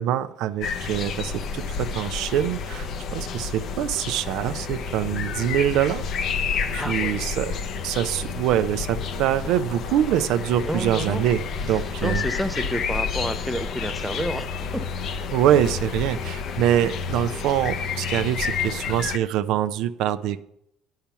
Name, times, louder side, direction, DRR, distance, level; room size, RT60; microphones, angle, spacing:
voice 1, 0.0-6.1 6.7-7.5 7.8-12.2 15.3-20.4, right 11 dB, 70° right, 11 dB, 0.5 m, -24 dB
sound 1, 0.6-19.2, left 6 dB, 55° left, 0.7 m, -30 dB
voice 2, 6.8-7.2 10.6-11.2 12.0-14.5 14.7-14.8, equal, ahead, 8 dB, 0.6 m, -29 dB
8.9 x 5.8 x 6.9 m, 0.76 s
cardioid pair, 105°, 0 cm